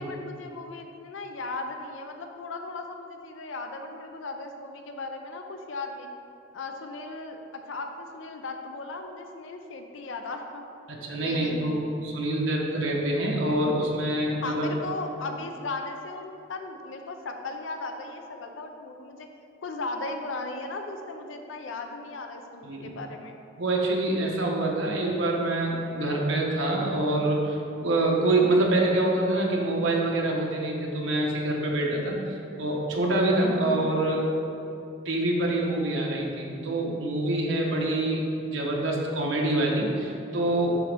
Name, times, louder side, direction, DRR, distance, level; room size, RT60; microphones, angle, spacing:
voice 1, 0.0-6.1 6.5-10.7 11.2-11.7 14.4-19.3 19.6-23.4, left 3 dB, 85° left, 5 dB, 0.6 m, -37 dB
voice 2, 10.9-14.7 22.6-22.9 23.6-34.3 35.0-40.8, right 1 dB, 80° right, -1 dB, 1.1 m, -26 dB
11.0 x 3.8 x 3.4 m, 2.8 s
head